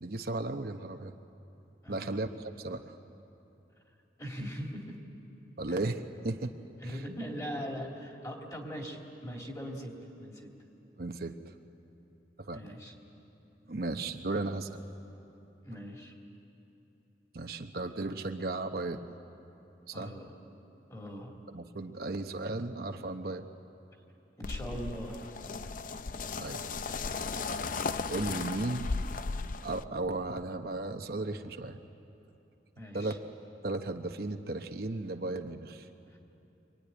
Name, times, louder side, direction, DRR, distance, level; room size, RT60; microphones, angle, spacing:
voice 1, 0.0-1.1 1.9-3.0 5.6-6.5 6.8-6.9 11.0-11.5 12.4-12.6 13.7-14.8 17.3-19.1 19.9-20.1 21.5-23.5 26.4-26.6 28.1-28.9 29.6-31.8 32.9-33.2 33.6-35.9, right 2 dB, 55° right, 5 dB, 0.9 m, -35 dB
voice 2, 1.8-2.2 4.2-5.0 6.8-10.6 12.5-12.9 15.6-16.2 19.9-20.3 20.9-21.3 24.4-25.3 32.8-33.2 36.1-36.2, equal, 20° left, 1 dB, 2.9 m, -40 dB
sound 1, 24.4-29.8, left 4 dB, 45° left, 0.6 m, -36 dB
24.5 x 24.5 x 10.0 m, 3.0 s
head